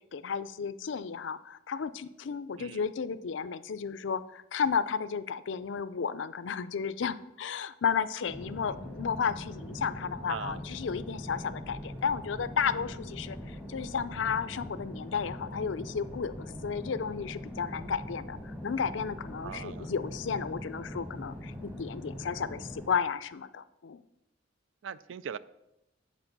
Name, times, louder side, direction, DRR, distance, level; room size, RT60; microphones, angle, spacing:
voice 1, 0.1-24.0, left 6 dB, 65° left, 14 dB, 0.4 m, -33 dB
sound 1, 8.3-22.9, equal, 10° right, 1.1 m, -42 dB
voice 2, 10.3-10.6 19.4-19.9 24.8-25.4, right 7 dB, 75° right, 17 dB, 0.4 m, -40 dB
8.3 x 4.6 x 6.6 m, 0.88 s
head